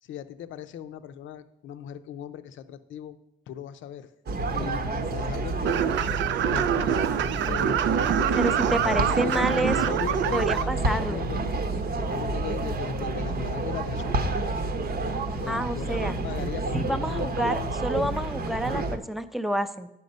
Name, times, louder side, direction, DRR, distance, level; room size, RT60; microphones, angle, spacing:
voice 1, 0.0-3.2 3.5-4.1 4.5-4.8 5.1-5.8 6.5-7.0 7.5-11.4 12.1-14.6 15.4-17.7, left 9 dB, 75° left, 11 dB, 0.6 m, -38 dB
sound 1, 4.3-19.0, right 2 dB, 50° right, 0.9 m, -29 dB
sound 2, 5.6-10.6, right 9 dB, 70° right, 0.4 m, -26 dB
voice 2, 8.4-10.0 10.3-11.2 15.5-16.2 16.7-17.5 17.8-19.9, right 1 dB, ahead, 9 dB, 0.6 m, -29 dB
9.1 x 5.8 x 5.3 m, 0.87 s
cardioid pair, 90°, 20 cm